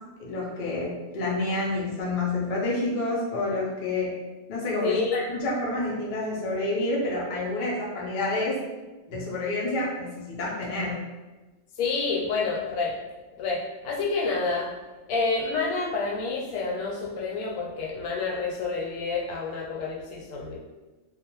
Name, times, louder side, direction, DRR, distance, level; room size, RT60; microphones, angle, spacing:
voice 1, 0.2-4.1 4.5-8.6 9.1-11.0, left 2 dB, 65° left, -5 dB, 0.5 m, -28 dB
voice 2, 4.8-5.2 11.8-12.9 13.4-14.7 15.1-20.6, left 4 dB, 80° left, 0 dB, 1.0 m, -28 dB
2.4 x 2.1 x 2.9 m, 1.2 s
omnidirectional pair, 1.5 m